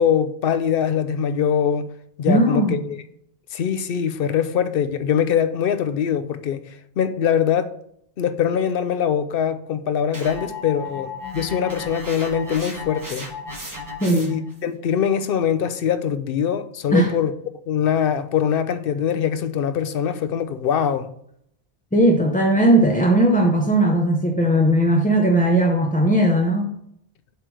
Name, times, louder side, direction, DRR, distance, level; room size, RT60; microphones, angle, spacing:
voice 1, 0.0-1.9 2.2-3.0 3.5-7.8 8.2-13.3 14.1-17.3 17.7-21.1, left 8 dB, 65° left, 0.8 m, -22 dB
voice 2, 2.3-2.9 14.0-14.4 16.9-17.1 21.9-26.7, right 1 dB, 10° left, 0.6 m, -18 dB
sound 1, 10.1-14.5, left 2 dB, 20° right, 1.1 m, -34 dB
7.8 x 3.2 x 6.1 m
omnidirectional pair, 1.1 m